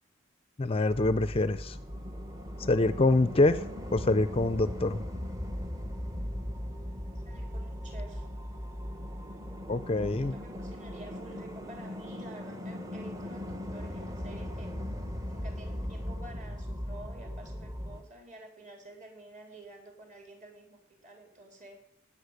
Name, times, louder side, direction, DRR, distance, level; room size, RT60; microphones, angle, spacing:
voice 1, 0.6-1.8 2.6-3.6 3.9-5.0 9.7-10.3, left 2 dB, 30° left, 14 dB, 0.5 m, -25 dB
sound 1, 0.9-18.0, left 1 dB, 15° right, 1.1 m, -38 dB
voice 2, 7.2-8.2 10.2-14.7 15.2-21.8, right 2 dB, 40° right, 3 dB, 4.2 m, -50 dB
18.0 x 8.8 x 6.6 m, 0.70 s
head